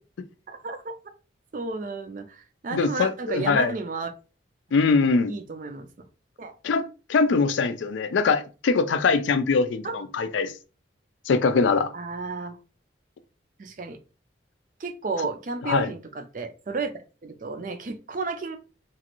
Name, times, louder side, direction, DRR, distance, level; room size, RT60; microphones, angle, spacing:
voice 1, 0.5-0.9 1.5-4.1 5.3-5.9 6.4-6.5 9.8-10.0 11.9-12.6 13.6-14.0 14.8-16.9 17.2-18.6, right 4 dB, 45° right, 0.4 m, -32 dB
voice 2, 2.7-3.7 4.7-5.3 6.6-10.5 11.3-11.9 15.6-15.9, left 4 dB, 80° left, 0.4 m, -22 dB
3.0 x 2.5 x 2.9 m
head